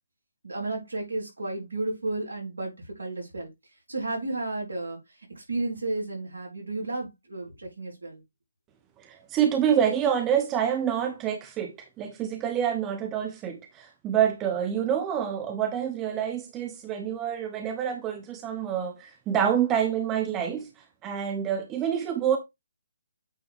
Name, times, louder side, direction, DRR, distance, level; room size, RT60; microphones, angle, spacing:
voice 1, 0.4-3.5 3.9-8.2, right 2 dB, 80° right, 4.0 m, -33 dB
voice 2, 9.0-20.7 21.0-22.4, right 9 dB, 20° right, 1.0 m, -27 dB
8.7 x 3.9 x 3.6 m
figure-of-eight pair, 140°, 0 cm